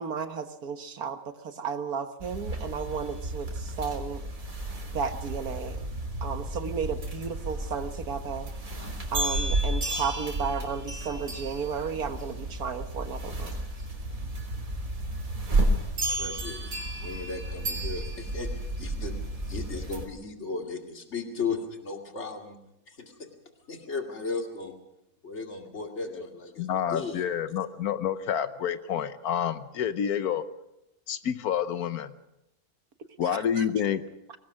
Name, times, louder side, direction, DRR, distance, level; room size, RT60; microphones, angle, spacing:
voice 1, 0.0-4.2 4.9-5.8 6.2-8.5 9.1-13.6 33.2-33.7, right 6 dB, 85° right, 8 dB, 1.9 m, -33 dB
sound 1, 2.2-20.1, right 1 dB, 65° right, 3.7 m, -32 dB
voice 2, 16.0-16.7 17.0-18.5 18.8-19.1 19.5-22.6 22.9-23.3 23.6-24.8 25.2-27.2, left 4 dB, 50° left, 3 dB, 2.7 m, -36 dB
voice 3, 26.6-30.4 31.1-32.1 33.2-34.0, left 9 dB, 85° left, 11 dB, 1.4 m, -28 dB
24.0 x 19.0 x 6.0 m, 0.86 s
omnidirectional pair, 1.5 m